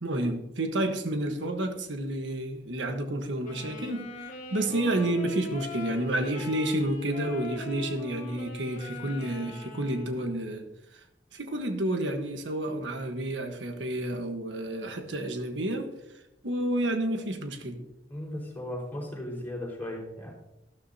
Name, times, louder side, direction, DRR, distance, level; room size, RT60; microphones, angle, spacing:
voice 1, 0.0-4.1 4.5-10.6 10.9-11.0 11.3-15.9 16.4-17.8, right 1 dB, 85° right, 6 dB, 1.3 m, -30 dB
Wind instrument woodwind instrument, 3.4-10.6, left 3 dB, 45° left, 1.4 m, -42 dB
voice 2, 18.1-20.3, left 1 dB, 10° left, -4 dB, 4.6 m, -36 dB
13.5 x 12.5 x 2.8 m, 0.88 s
head